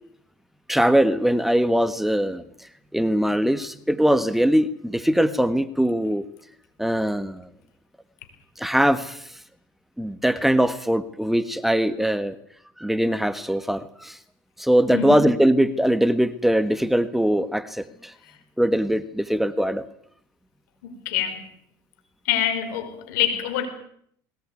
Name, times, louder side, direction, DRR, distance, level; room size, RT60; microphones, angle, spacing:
voice 1, 0.7-2.4 2.9-6.3 6.8-7.5 8.6-9.2 10.0-12.4 12.8-14.2 14.6-18.1 18.6-19.8, equal, ahead, 12 dB, 1.5 m, -21 dB
voice 2, 20.8-21.4 22.3-23.7, left 9 dB, 80° left, 8 dB, 5.1 m, -25 dB
21.0 x 18.5 x 9.6 m, 0.67 s
supercardioid pair, 90°, 10 cm